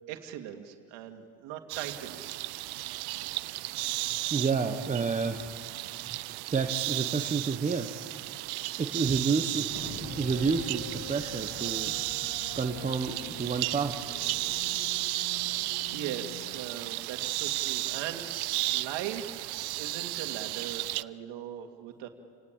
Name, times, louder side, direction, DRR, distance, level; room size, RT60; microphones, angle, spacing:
voice 1, 0.1-2.5 15.3-18.3 18.7-22.1, right 10 dB, 80° right, 5 dB, 2.3 m, -40 dB
sound 1, 1.7-21.0, right 19 dB, 65° right, 0.6 m, -34 dB
voice 2, 4.3-5.5 6.1-6.2 6.5-7.9 8.8-11.9 12.5-13.9, right 5 dB, 15° right, 4 dB, 1.1 m, -30 dB
Thunder, 9.7-14.9, left 2 dB, 90° left, 4.5 m, -46 dB
sound 2, 10.0-16.7, left 7 dB, 70° left, 1.8 m, -47 dB
29.5 x 18.0 x 8.8 m, 2.1 s
cardioid pair, 140°, 43 cm